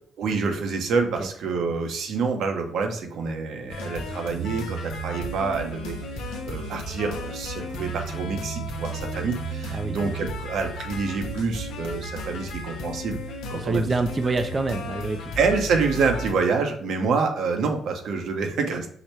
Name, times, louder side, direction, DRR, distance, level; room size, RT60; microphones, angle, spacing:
voice 1, 0.2-13.2 13.5-13.9 15.4-18.9, right 4 dB, 75° right, 5 dB, 0.7 m, -27 dB
sound 1, 3.7-16.3, right 1 dB, 90° left, 0.7 m, -34 dB
voice 2, 13.5-15.3, right 3 dB, 30° right, 7 dB, 0.3 m, -26 dB
4.8 x 2.1 x 4.3 m, 0.65 s
cardioid pair, 90°, 0 cm